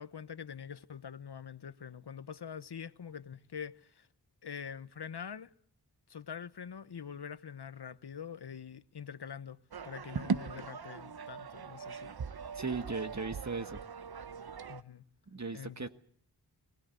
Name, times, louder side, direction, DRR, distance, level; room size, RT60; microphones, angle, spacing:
voice 1, 0.0-4.1 4.4-5.5 6.1-12.2 14.7-15.1 15.5-15.9, left 7 dB, 75° left, 1.0 m, -45 dB
sound 1, 9.7-14.8, right 5 dB, 65° right, 0.9 m, -40 dB
voice 2, 12.5-13.8 15.3-15.9, right 4 dB, 45° right, 1.7 m, -37 dB
23.0 x 17.5 x 9.4 m
wide cardioid pair, 55°, 40 cm